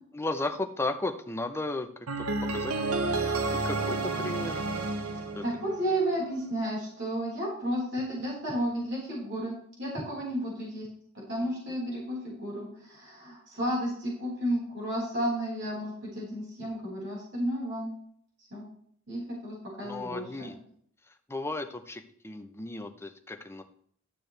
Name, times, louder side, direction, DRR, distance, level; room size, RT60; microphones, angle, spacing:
voice 1, 0.1-1.9 2.5-2.7 3.6-4.6 5.3-5.4 11.4-11.8 19.8-20.5 21.3-23.6, left 2 dB, 10° left, 6 dB, 0.7 m, -34 dB
sound 1, 2.1-6.1, right 3 dB, 80° right, 0.9 m, -30 dB
voice 2, 5.4-10.9 11.1-17.9 18.5-18.6 19.1-20.5, right 1 dB, 55° right, -5 dB, 4.4 m, -32 dB
12.5 x 6.8 x 3.3 m, 0.63 s
head